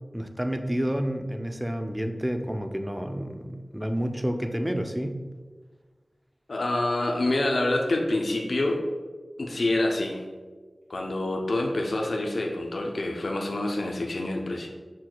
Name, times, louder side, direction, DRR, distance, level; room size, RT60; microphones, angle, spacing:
voice 1, 0.1-5.2, equal, 10° right, 6 dB, 0.4 m, -29 dB
voice 2, 6.5-8.8 9.4-10.3 10.9-14.7, left 2 dB, 70° left, 1 dB, 0.5 m, -27 dB
6.2 x 2.2 x 3.8 m, 1.4 s
wide cardioid pair, 55°, 0 cm